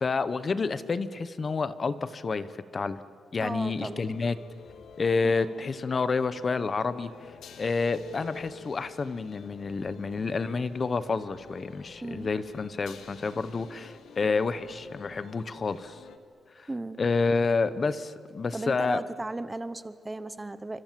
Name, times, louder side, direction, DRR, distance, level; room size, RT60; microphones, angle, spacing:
voice 1, 0.0-2.5 2.7-3.0 3.3-4.4 5.0-7.1 7.6-16.0 16.6-16.7 17.0-19.0, left 4 dB, 35° left, 14 dB, 1.0 m, -29 dB
voice 2, 3.4-4.0 5.2-5.5 12.0-12.3 16.7-17.0 18.5-20.8, right 2 dB, 15° right, 14 dB, 0.8 m, -36 dB
sound 1, 3.8-16.2, left 7 dB, 75° left, 1.9 m, -49 dB
28.5 x 26.0 x 7.6 m, 2.3 s
wide cardioid pair, 145°, 0 cm